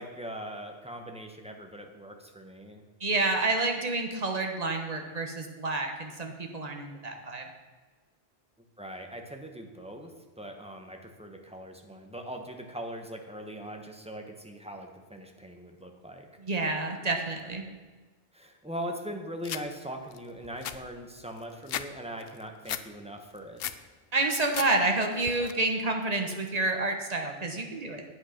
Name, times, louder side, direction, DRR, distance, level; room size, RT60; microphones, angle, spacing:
voice 1, 0.0-2.8 8.8-16.3 18.3-23.6, equal, 5° right, 3 dB, 1.1 m, -41 dB
voice 2, 3.0-7.5 16.4-17.6 24.1-28.0, right 2 dB, 40° right, 3 dB, 1.3 m, -29 dB
sound 1, 19.4-19.6 20.1-20.2 20.4-21.9 22.2-22.8 23.2-23.8 24.2-24.7 25.0-25.5, left 10 dB, 65° left, 0.8 m, -36 dB
9.2 x 8.0 x 5.9 m, 1.4 s
omnidirectional pair, 1.1 m